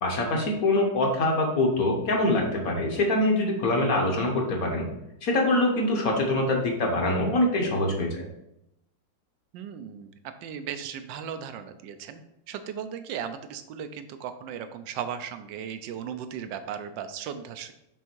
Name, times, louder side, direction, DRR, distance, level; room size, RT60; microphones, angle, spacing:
voice 1, 0.0-4.9 5.2-8.2, left 1 dB, 55° left, 1 dB, 1.4 m, -24 dB
voice 2, 9.5-10.1 10.4-12.2 12.5-17.7, right 8 dB, 85° right, 9 dB, 1.3 m, -36 dB
6.3 x 3.4 x 4.5 m, 0.83 s
omnidirectional pair, 1.9 m